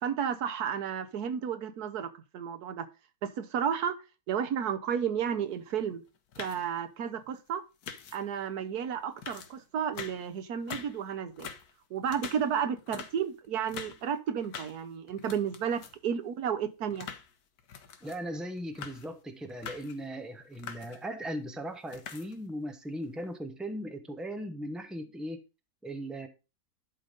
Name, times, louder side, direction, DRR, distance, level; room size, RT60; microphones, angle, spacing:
voice 1, 0.0-2.9 3.2-4.0 4.3-6.0 6.4-7.6 8.1-11.5 11.9-17.1, right 8 dB, 85° right, 1.5 m, -32 dB
sound 1, 5.5-5.7 6.1-6.7 7.8-8.4 8.8-8.9 9.2-10.3 10.6-11.0 11.3-14.1 14.4-14.8 15.1-16.1 16.4-18.2 18.6-19.1 19.5-20.0 20.4-21.1 21.7-22.5 23.0-23.3, left 7 dB, 80° left, 1.5 m, -44 dB
voice 2, 18.0-25.4 25.8-26.3, equal, ahead, 0.9 m, -38 dB
11.0 x 4.0 x 5.1 m
omnidirectional pair, 1.6 m